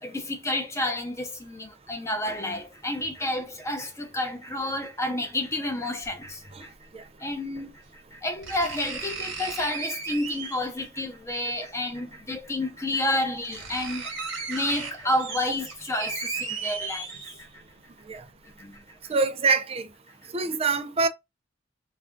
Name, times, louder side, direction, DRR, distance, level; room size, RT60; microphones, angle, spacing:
voice 1, 0.0-6.7 7.2-17.5 18.6-19.1, left 1 dB, 15° left, 0.7 m, -30 dB
sound 1, 6.0-6.1 7.6-7.7 8.4-10.8 12.2-12.3 12.9-13.0 13.2-17.7 18.1-18.2, right 5 dB, 70° right, 1.1 m, -35 dB
voice 2, 19.1-19.9 20.3-21.1, right 4 dB, 30° right, 0.4 m, -24 dB
2.5 x 2.3 x 3.6 m
head